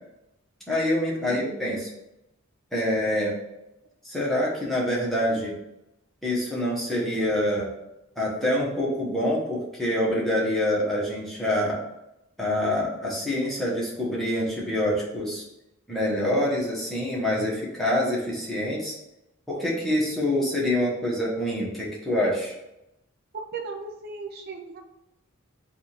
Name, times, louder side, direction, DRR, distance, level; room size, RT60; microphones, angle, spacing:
voice 1, 0.7-1.9 2.7-3.3 4.0-5.5 6.2-7.7 8.2-11.8 12.4-15.4 15.9-18.9 19.5-22.5, left 1 dB, ahead, -6 dB, 1.1 m, -26 dB
voice 2, 1.2-1.6 23.3-24.8, right 4 dB, 50° right, 4 dB, 0.5 m, -37 dB
3.6 x 2.4 x 4.3 m, 0.88 s
head